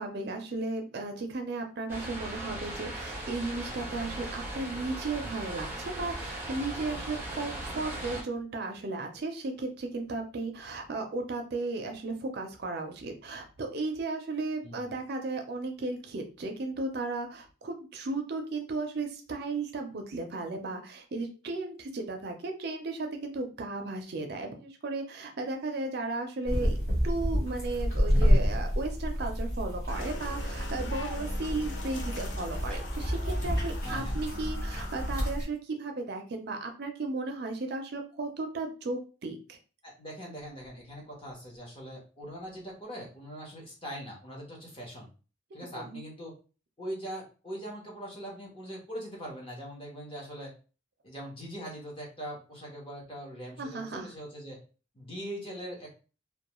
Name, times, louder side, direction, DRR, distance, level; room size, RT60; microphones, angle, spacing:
voice 1, 0.0-26.8 27.0-39.6 45.7-46.0 53.6-54.1, right 3 dB, 50° right, 4 dB, 0.4 m, -35 dB
sound 1, 1.9-8.2, right 1 dB, 10° right, 0.7 m, -38 dB
sound 2, 26.5-35.5, equal, 10° left, 1.2 m, -29 dB
sound 3, 29.9-35.3, left 2 dB, 60° left, 0.5 m, -42 dB
voice 2, 33.8-34.2 39.8-45.1 45.5-46.3 46.8-50.5 51.0-54.6 54.9-56.0, equal, 25° left, -3 dB, 0.8 m, -41 dB
2.2 x 2.2 x 3.0 m, 0.35 s
head